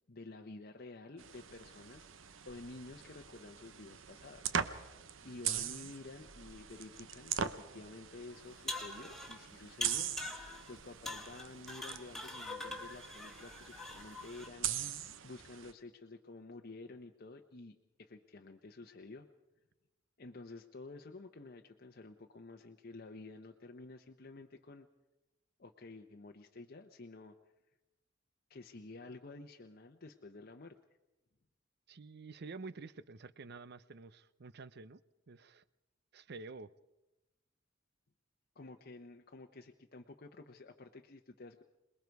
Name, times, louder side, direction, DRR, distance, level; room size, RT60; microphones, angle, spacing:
voice 1, 0.1-4.5 5.2-10.1 10.7-19.3 20.2-24.9 25.6-27.4 28.5-30.8 38.5-41.6, left 3 dB, 50° left, 0.9 m, -51 dB
sound 1, 1.2-15.7, right 8 dB, 85° right, 0.9 m, -42 dB
sound 2, 8.4-9.4 9.8-10.7 11.0-14.5, left 2 dB, ahead, 2.0 m, -43 dB
voice 2, 31.9-35.0 35.3-35.6 36.1-36.7, right 4 dB, 55° right, 0.6 m, -49 dB
27.0 x 20.5 x 4.7 m
head